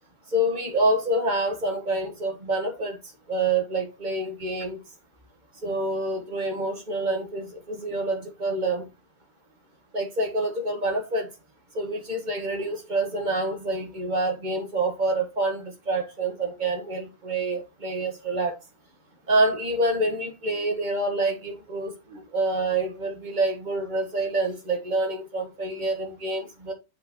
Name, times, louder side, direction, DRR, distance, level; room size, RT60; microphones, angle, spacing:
voice 1, 0.3-3.0 3.3-4.8 5.6-8.8 9.9-11.3 11.7-18.5 19.3-26.7, right 2 dB, 40° right, 1.7 m, -27 dB
7.7 x 5.4 x 3.0 m
omnidirectional pair, 1.2 m